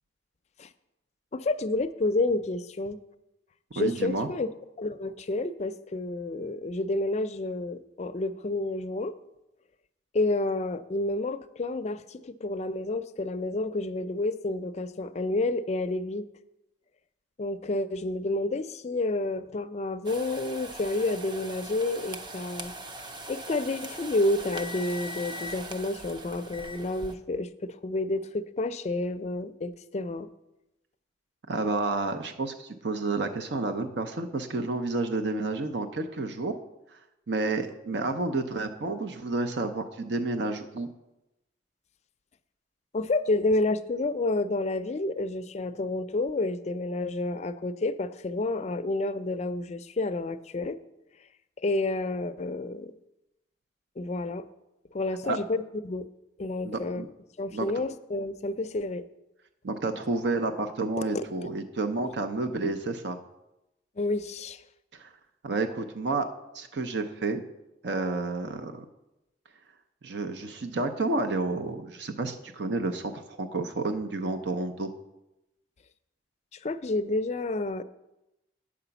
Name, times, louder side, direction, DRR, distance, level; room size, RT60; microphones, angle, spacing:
voice 1, 1.3-3.0 3.7-4.5 4.8-9.1 10.1-16.3 17.4-22.7 23.3-30.3 42.9-50.8 51.6-52.9 54.0-54.4 54.9-56.1 56.4-57.0 57.4-59.0 61.1-61.2 64.0-64.6 76.6-77.8, left 2 dB, 35° left, 10 dB, 0.4 m, -29 dB
voice 2, 3.8-4.3 31.5-36.5 37.3-40.9 55.2-55.4 56.6-57.1 57.5-57.7 59.6-63.2 65.0-65.1 65.4-66.3 66.5-67.4 67.8-68.8 70.0-73.1 73.4-74.9, right 3 dB, 70° right, 7 dB, 0.6 m, -30 dB
sound 1, 20.0-27.1, right 1 dB, 25° right, 0.5 m, -40 dB
8.6 x 4.9 x 6.9 m, 0.93 s
head